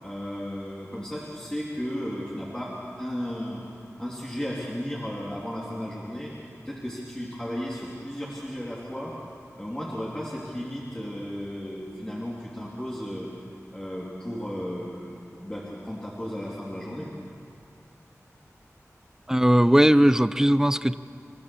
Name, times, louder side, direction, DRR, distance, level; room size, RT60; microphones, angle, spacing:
voice 1, 0.0-3.6 4.0-6.3 6.6-9.1 9.6-13.3 13.7-17.1, equal, 15° left, -6 dB, 3.0 m, -34 dB
voice 2, 19.3-20.9, right 1 dB, 10° right, 14 dB, 0.5 m, -19 dB
29.5 x 14.0 x 7.0 m, 2.5 s
wide cardioid pair, 70°, 6 cm